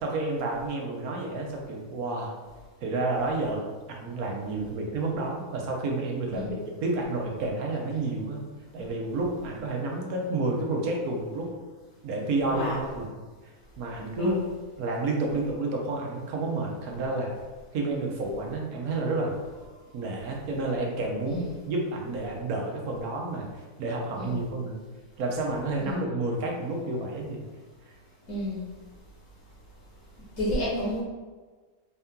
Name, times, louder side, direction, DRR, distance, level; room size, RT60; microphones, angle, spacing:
voice 1, 0.0-2.3 2.8-8.4 8.7-11.5 12.0-13.2 13.8-14.4 14.8-17.3 17.7-19.3 19.9-24.8 25.2-27.4, right 2 dB, 75° right, 0 dB, 1.3 m, -30 dB
voice 2, 12.5-12.8 14.2-14.4 21.2-21.6 24.2-24.4 25.8-26.0 28.3-28.6 30.4-31.0, left 1 dB, 65° left, -7 dB, 1.4 m, -30 dB
4.6 x 2.8 x 3.5 m, 1.4 s
omnidirectional pair, 1.6 m